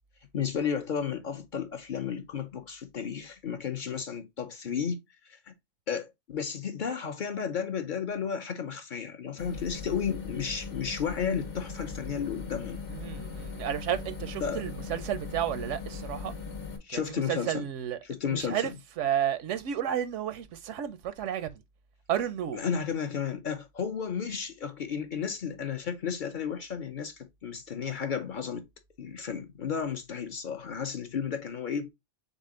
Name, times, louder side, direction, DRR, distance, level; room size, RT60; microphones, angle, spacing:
voice 1, 0.3-5.5 5.9-12.8 14.4-14.6 16.8-17.7 18.0-18.8 22.5-28.7 29.0-31.9, left 7 dB, 50° left, 0.6 m, -33 dB
sound 1, 9.4-16.8, left 4 dB, 75° left, 1.4 m, -39 dB
voice 2, 12.9-16.3 16.9-17.0 17.3-18.0 18.3-18.7 19.0-21.6 22.1-22.6, right 10 dB, 85° right, 1.0 m, -32 dB
4.1 x 3.6 x 3.7 m
omnidirectional pair, 1.2 m